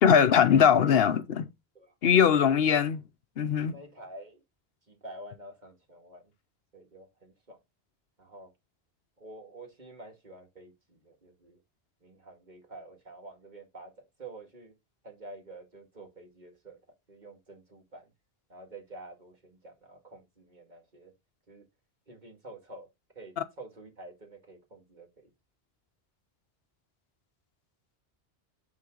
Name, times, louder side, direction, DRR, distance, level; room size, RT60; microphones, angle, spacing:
voice 1, 0.0-1.5 2.0-3.0 3.4-3.7, left 8 dB, 70° left, 0.9 m, -21 dB
voice 2, 1.7-2.6 3.7-4.4 4.9-6.3 6.7-7.6 8.2-8.5 9.2-11.6 12.0-14.7 15.0-16.8 17.1-18.1 18.5-21.1 21.5-21.7 22.1-22.9 23.2-25.3, right 2 dB, 45° right, 2.2 m, -48 dB
9.5 x 3.8 x 3.8 m
omnidirectional pair, 1.1 m